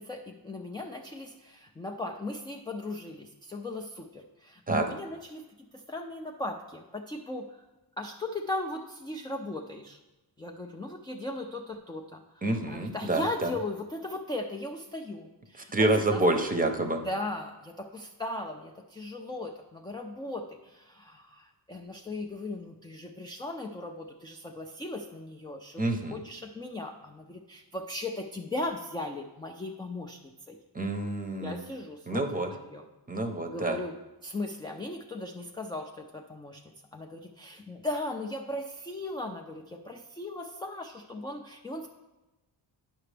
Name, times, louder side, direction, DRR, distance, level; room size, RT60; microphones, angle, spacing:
voice 1, 0.0-7.6 8.0-10.0 10.4-16.2 16.9-30.2 30.5-30.6 31.3-32.9 33.5-34.0 34.2-36.6 36.9-41.9, left 2 dB, 10° left, 2 dB, 0.3 m, -38 dB
voice 2, 12.4-13.5 15.7-17.0 25.8-26.2 30.7-31.6 32.1-32.5 33.1-33.8, right 2 dB, 20° right, 5 dB, 0.7 m, -27 dB
9.9 x 5.8 x 3.3 m, 1.1 s
wide cardioid pair, 140°, 42 cm